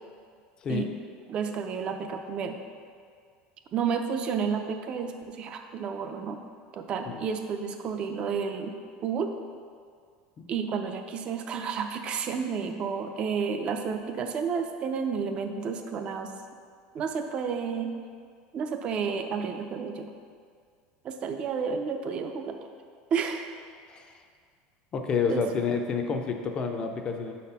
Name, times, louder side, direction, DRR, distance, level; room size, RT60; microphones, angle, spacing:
voice 1, 1.3-2.6 3.7-6.4 6.7-8.8 9.0-9.3 10.5-16.3 16.9-17.9 18.5-20.1 21.0-22.6 23.1-23.5 25.3-25.4, right 6 dB, 30° right, 6 dB, 0.4 m, -31 dB
voice 2, 24.9-27.4, left 5 dB, 25° left, 5 dB, 0.5 m, -29 dB
6.2 x 4.2 x 5.4 m, 2.1 s
cardioid pair, 170°, 4 cm